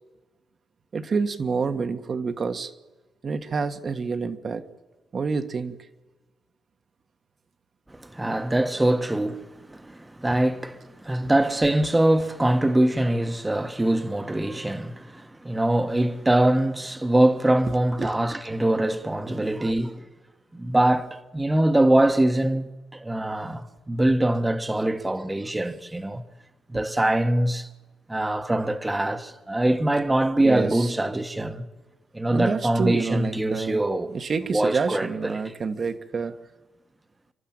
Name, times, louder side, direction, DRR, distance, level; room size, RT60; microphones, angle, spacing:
voice 1, 0.9-2.7 3.2-4.6 5.1-5.8 18.0-18.1 19.2-19.5 30.4-30.9 32.3-33.8 34.1-36.4, right 5 dB, 45° right, 1.6 m, -28 dB
voice 2, 7.9-20.0 20.5-26.2 26.7-27.7 28.1-31.7 32.1-34.1 34.5-35.4, right 1 dB, 10° right, 1.4 m, -23 dB
28.5 x 12.5 x 8.9 m
cardioid pair, 90°, 0 cm